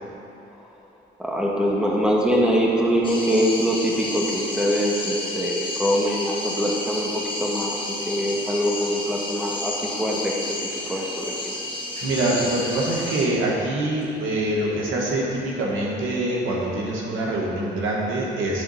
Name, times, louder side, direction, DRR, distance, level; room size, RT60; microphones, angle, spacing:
voice 1, 1.2-7.8 8.1-10.6 10.9-11.5, equal, 5° right, -3 dB, 1.3 m, -23 dB
sound 1, 3.0-13.3, left 2 dB, 25° left, 1.5 m, -31 dB
voice 2, 12.0-18.6, right 1 dB, 85° right, -3 dB, 1.6 m, -25 dB
10.5 x 3.8 x 5.6 m, 2.9 s
cardioid pair, 90°, 20 cm